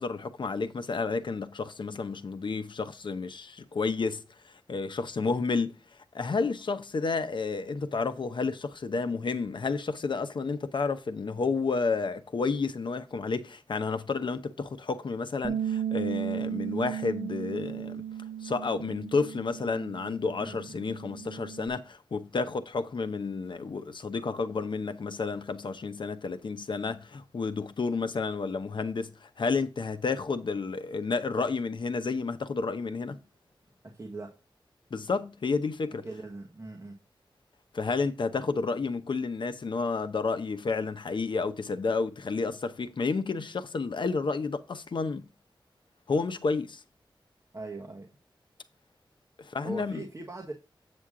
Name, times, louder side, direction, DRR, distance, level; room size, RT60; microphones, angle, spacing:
voice 1, 0.0-5.8 6.1-18.0 18.4-33.2 34.9-36.1 37.7-45.2 46.1-46.8 49.4-50.0, left 4 dB, 65° left, 0.8 m, -31 dB
Bass guitar, 15.4-21.7, right 9 dB, 65° right, 1.2 m, -35 dB
voice 2, 20.4-20.8 33.8-34.4 36.0-37.0 47.5-48.1 49.6-50.5, right 2 dB, 30° right, 1.4 m, -40 dB
8.5 x 6.4 x 3.7 m
wide cardioid pair, 110°, 9 cm